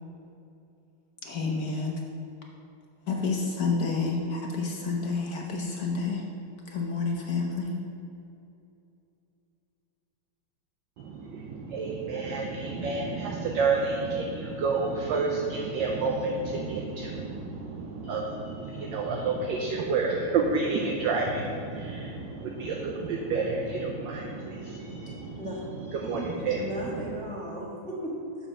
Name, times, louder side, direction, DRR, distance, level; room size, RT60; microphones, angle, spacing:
voice 1, 1.2-2.0 3.1-6.2 6.7-7.7, left 4 dB, 60° left, 0 dB, 1.1 m, -29 dB
voice 2, 11.0-27.1, right 4 dB, 70° right, 0 dB, 1.3 m, -30 dB
voice 3, 26.6-28.5, right 1 dB, 5° left, -5 dB, 1.0 m, -36 dB
7.1 x 5.4 x 6.0 m, 2.8 s
omnidirectional pair, 2.2 m